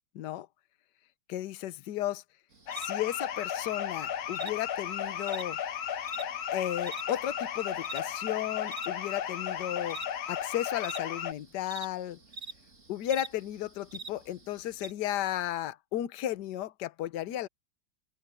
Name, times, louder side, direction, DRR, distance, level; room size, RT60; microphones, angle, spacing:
voice 1, 0.1-0.5 1.3-2.2 2.8-5.6 6.5-10.0 10.3-12.2 12.9-17.5, left 12 dB, 60° left, 1.4 m, -34 dB
sound 1, 2.5-14.9, right 4 dB, 35° right, 3.2 m, -48 dB
sound 2, 2.7-11.3, left 9 dB, 80° left, 2.1 m, -35 dB
omnidirectional pair, 2.2 m